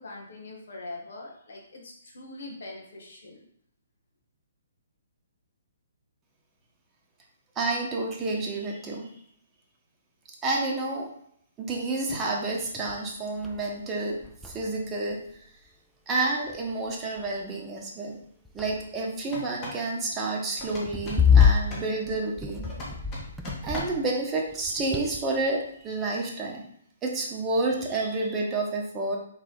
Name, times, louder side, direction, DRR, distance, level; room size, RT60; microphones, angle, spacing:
voice 1, 0.0-3.5, left 2 dB, 65° left, -1 dB, 1.3 m, -42 dB
voice 2, 7.6-9.1 10.4-11.1 11.6-14.2 14.4-15.2 16.1-18.2 18.5-22.7 23.6-26.7 27.0-29.2, right 2 dB, 20° right, -1 dB, 1.0 m, -29 dB
sound 1, 13.0-13.1 13.4-13.7 14.0-15.7 16.5-16.9 17.2-17.4 18.2-19.2 20.6-24.2 24.5-25.5, left 7 dB, ahead, 0.4 m, -26 dB
sound 2, 19.2-19.9 20.6-21.9 22.6-24.1, left 1 dB, 25° left, 1.7 m, -39 dB
4.1 x 3.3 x 3.8 m, 0.67 s
figure-of-eight pair, 130°, 0 cm